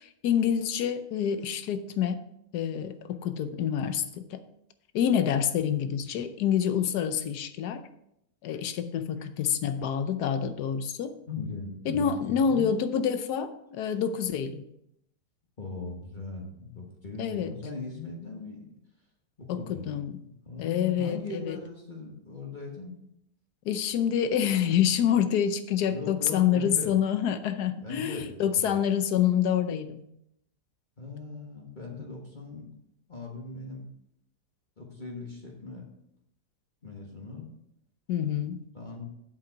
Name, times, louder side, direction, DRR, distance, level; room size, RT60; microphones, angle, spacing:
voice 1, 0.0-2.2 2.5-4.4 4.9-7.8 8.4-11.2 11.9-14.6 17.2-17.5 19.5-20.1 20.6-21.6 23.6-30.0 38.1-38.6, left 8 dB, 75° left, 10 dB, 1.3 m, -27 dB
voice 2, 11.3-12.7 15.6-18.7 19.4-19.9 20.4-23.0 25.9-27.0 27.8-28.8 31.0-32.7 33.1-33.8 34.8-35.9 36.8-37.5 38.7-39.1, left 3 dB, 30° left, -1 dB, 1.4 m, -39 dB
7.8 x 7.7 x 4.6 m, 0.77 s
omnidirectional pair, 1.8 m